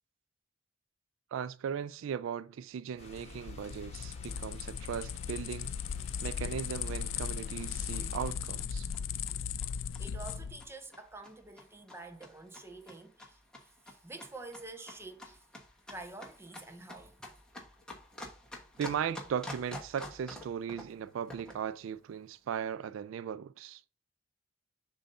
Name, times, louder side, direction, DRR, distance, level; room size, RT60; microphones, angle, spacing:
voice 1, 1.3-5.7 6.2-8.9 18.8-23.8, right 8 dB, 80° right, 0.3 m, -37 dB
sound 1, 3.0-10.7, left 7 dB, 75° left, 0.4 m, -37 dB
sound 2, 3.0-8.3, left 2 dB, 35° left, 1.2 m, -53 dB
sound 3, 6.3-21.7, left 1 dB, 5° left, 1.1 m, -49 dB
voice 2, 9.8-15.4 15.9-17.3, right 3 dB, 15° right, 0.7 m, -48 dB
6.9 x 2.7 x 5.3 m
head